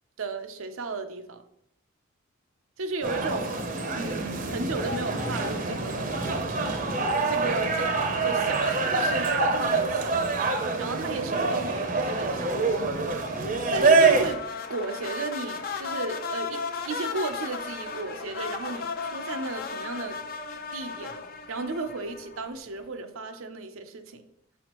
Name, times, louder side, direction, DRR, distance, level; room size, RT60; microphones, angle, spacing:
voice 1, 0.2-1.4 2.8-3.6 3.9-6.2 7.3-7.9 8.2-10.2 10.5-12.5 13.7-14.4 14.7-20.2 20.7-21.2 21.5-24.2, right 3 dB, 75° right, 0.7 m, -34 dB
sound 1, 3.0-14.3, right 3 dB, 40° right, 0.7 m, -25 dB
sound 2, 14.1-22.5, left 5 dB, 45° left, 0.6 m, -35 dB
6.3 x 5.8 x 3.0 m
head